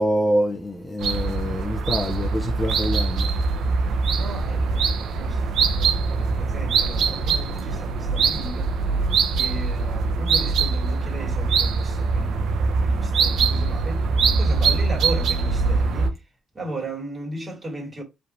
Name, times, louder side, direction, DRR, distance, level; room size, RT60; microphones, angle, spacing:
voice 1, 0.0-3.3, equal, 15° left, 0.8 m, -25 dB
sound 1, 1.0-16.1, right 4 dB, 70° right, 0.8 m, -23 dB
voice 2, 3.9-8.7 9.3-16.2 16.5-18.0, right 1 dB, 25° right, 2.8 m, -36 dB
4.9 x 3.4 x 2.8 m
cardioid pair, 90°, 0 cm